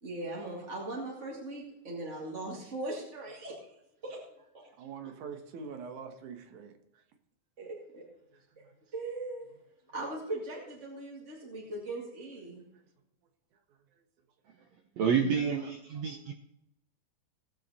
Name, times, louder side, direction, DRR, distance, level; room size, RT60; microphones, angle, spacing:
voice 1, 0.0-3.7 4.0-4.2 4.5-4.7 7.6-8.0 8.6-8.7 8.9-9.5 9.9-12.6, right 2 dB, 25° right, -3 dB, 1.7 m, -39 dB
voice 2, 4.8-6.7 8.5-8.7 12.7-12.8, right 5 dB, 65° right, 5 dB, 2.5 m, -44 dB
voice 3, 15.0-16.3, right 6 dB, 80° right, 4 dB, 1.5 m, -29 dB
18.5 x 7.5 x 4.1 m, 0.84 s
omnidirectional pair, 4.2 m